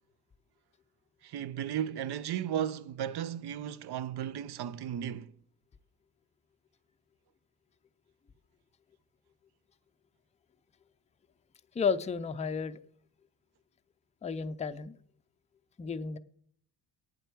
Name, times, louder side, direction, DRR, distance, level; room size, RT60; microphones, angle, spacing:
voice 1, 1.2-5.4, right 10 dB, 65° right, 0.6 m, -35 dB
voice 2, 11.7-12.8 14.2-15.0 15.8-16.2, left 5 dB, 15° left, 0.4 m, -32 dB
9.0 x 7.9 x 4.6 m
cardioid pair, 95°, 43 cm